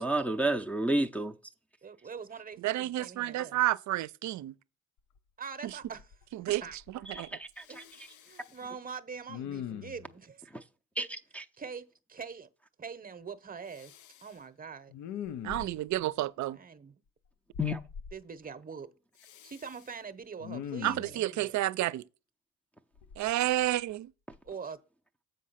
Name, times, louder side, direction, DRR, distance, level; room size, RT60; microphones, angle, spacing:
voice 1, 0.0-1.3 7.1-7.8 11.0-11.5 17.6-17.8, right 1 dB, 5° left, 0.6 m, -31 dB
voice 2, 1.8-3.6 5.4-6.1 6.5-6.8 7.7-10.5 11.6-12.5 12.8-13.9 14.2-14.9 16.5-17.0 18.1-18.9 19.4-21.6 24.4-24.8, right 6 dB, 30° right, 0.8 m, -44 dB
voice 3, 2.6-4.5 5.6-5.7 6.3-6.6 7.1-7.3 15.4-16.6 20.8-22.0 23.2-24.1, right 15 dB, 70° right, 0.5 m, -30 dB
Respiratory sounds, 5.2-5.3 5.7-6.2 6.5-7.2 7.6-8.6 9.3-10.1 13.7-14.3 14.9-16.0 17.5-18.1 19.2-19.9 20.4-21.2 23.0-23.9 24.3-24.5, left 9 dB, 75° left, 0.6 m, -43 dB
7.4 x 5.3 x 5.7 m
cardioid pair, 90°, 30 cm